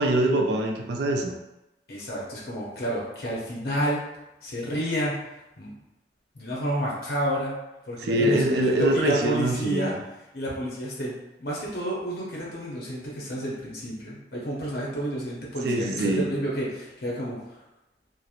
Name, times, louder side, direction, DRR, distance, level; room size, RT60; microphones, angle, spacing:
voice 1, 0.0-1.3 8.0-9.8 15.6-16.3, right 1 dB, 70° right, 2 dB, 0.4 m, -24 dB
voice 2, 1.9-4.0 4.4-5.2 5.6-5.7 6.3-7.6 7.8-9.9 10.3-11.1 11.4-17.4, equal, 60° left, -5 dB, 0.7 m, -30 dB
2.9 x 2.0 x 2.4 m, 0.94 s
head